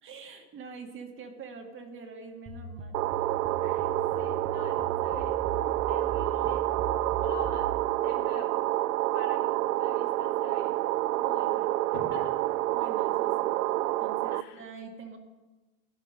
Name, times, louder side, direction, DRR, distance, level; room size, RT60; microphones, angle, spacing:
voice 1, 0.0-3.0 12.7-13.5 14.0-15.2, right 5 dB, 25° right, 4 dB, 2.2 m, -45 dB
sound 1, 2.5-7.8, right 3 dB, 10° right, 1.7 m, -40 dB
sound 2, 2.9-14.4, right 16 dB, 80° right, 0.6 m, -28 dB
voice 2, 4.1-5.3 5.9-6.6 7.2-7.7 7.9-8.5 9.1-10.7 11.2-12.3 14.3-14.6, left 6 dB, 80° left, -2 dB, 4.7 m, -44 dB
16.5 x 11.0 x 5.2 m, 1.1 s
supercardioid pair, 125°, 44 cm